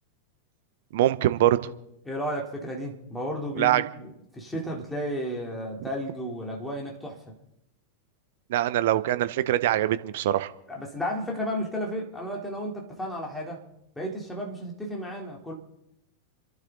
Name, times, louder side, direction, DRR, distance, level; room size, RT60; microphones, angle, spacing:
voice 1, 0.9-1.7 3.6-3.8 8.5-10.5, right 13 dB, 55° right, 0.8 m, -23 dB
voice 2, 2.1-7.3 10.7-13.6 14.0-15.5, equal, 5° left, 3.5 m, -33 dB
30.0 x 11.5 x 3.9 m
figure-of-eight pair, 90°, 0 cm